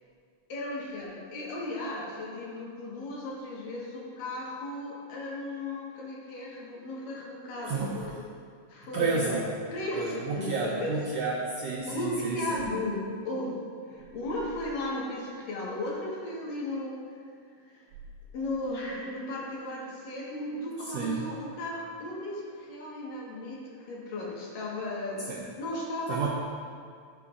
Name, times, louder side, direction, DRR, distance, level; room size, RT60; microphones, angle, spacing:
voice 1, 0.5-8.2 8.7-9.4 9.7-10.9 11.9-13.6 13.9-17.0 17.7-17.8 18.3-26.3, left 1 dB, 75° left, -4 dB, 3.2 m, -35 dB
voice 2, 7.6-8.0 8.9-9.5 9.9-12.6 20.9-21.3 25.3-25.4 26.1-26.3, right 4 dB, 80° right, -4 dB, 1.5 m, -31 dB
14.0 x 6.9 x 2.5 m, 2.2 s
omnidirectional pair, 3.9 m